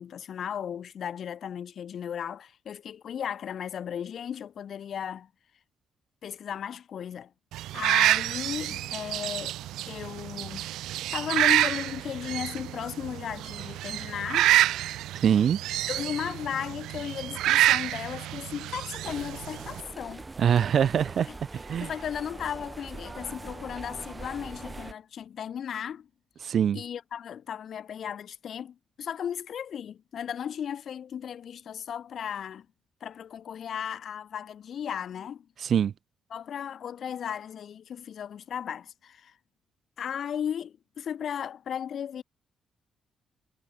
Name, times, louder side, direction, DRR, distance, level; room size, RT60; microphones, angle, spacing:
voice 1, 0.0-5.3 6.2-7.3 7.7-9.6 9.9-14.5 15.9-20.3 21.3-21.4 21.8-26.1 26.7-32.7 33.0-35.5 36.3-39.3 40.0-42.2, left 8 dB, 60° left, 3.6 m, -35 dB
sound 1, 7.5-19.8, right 14 dB, 85° right, 0.3 m, -28 dB
voice 2, 15.2-15.6 20.4-21.9 26.4-26.8 35.6-35.9, right 8 dB, 60° right, 0.6 m, -24 dB
sound 2, 19.0-24.9, right 3 dB, 20° right, 7.0 m, -42 dB
cardioid pair, 90°, 0 cm